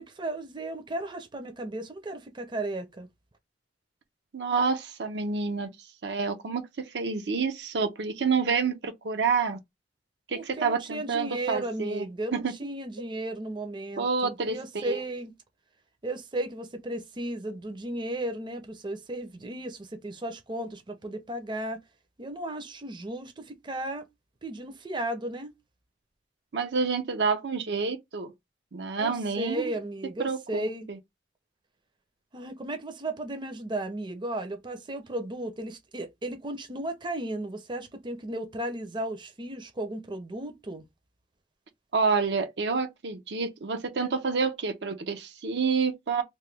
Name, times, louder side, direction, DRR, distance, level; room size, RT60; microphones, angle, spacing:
voice 1, 0.0-3.1 10.3-15.3 16.0-21.8 22.2-24.1 24.4-25.5 29.0-30.9 32.3-40.8, right 1 dB, 25° right, 0.6 m, -35 dB
voice 2, 4.3-5.7 6.0-9.6 10.3-12.1 12.3-12.5 14.0-15.0 26.5-28.3 28.7-29.7 30.2-31.0 41.9-46.2, right 5 dB, 70° right, 0.6 m, -28 dB
3.0 x 2.2 x 3.3 m
head